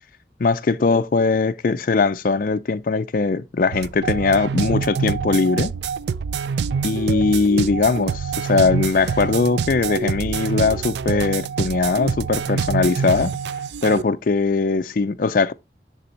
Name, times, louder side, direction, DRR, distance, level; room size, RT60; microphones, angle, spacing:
voice 1, 0.4-5.7 6.8-13.3 13.8-15.5, left 4 dB, 50° left, 0.4 m, -20 dB
sound 1, 3.7-14.0, right 6 dB, 70° right, 0.4 m, -26 dB
9.9 x 3.4 x 4.2 m
head